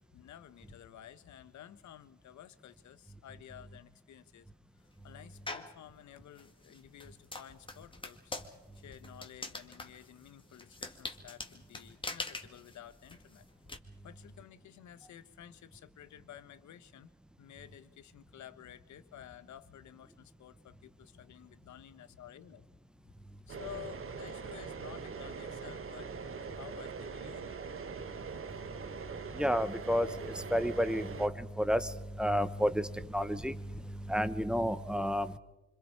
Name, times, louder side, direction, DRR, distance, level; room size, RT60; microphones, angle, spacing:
voice 1, 0.0-4.5 4.8-8.3 8.7-13.5 14.0-17.1 17.4-22.7 23.0-23.1 23.5-27.6, left 11 dB, 70° left, 13 dB, 1.3 m, -52 dB
sound 1, 5.5-5.8 6.3-13.8, left 2 dB, 15° left, 2.2 m, -43 dB
sound 2, 23.5-31.3, right 5 dB, 45° right, 1.4 m, -42 dB
voice 2, 29.4-31.9 32.2-33.6 34.1-35.3, equal, 5° right, 13 dB, 1.1 m, -31 dB
26.0 x 25.5 x 4.8 m, 1.0 s
cardioid pair, 90°, 30 cm